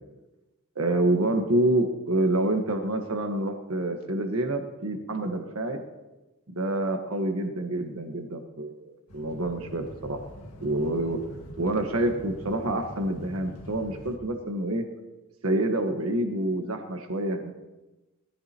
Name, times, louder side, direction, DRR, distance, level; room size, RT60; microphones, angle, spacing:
voice 1, 0.8-5.8 6.5-10.2 10.6-11.2 11.6-14.8 15.4-17.5, right 1 dB, 75° right, 4 dB, 1.4 m, -27 dB
sound 1, 9.1-14.2, left 1 dB, 85° left, 1.8 m, -44 dB
21.0 x 15.0 x 2.9 m, 1.1 s
head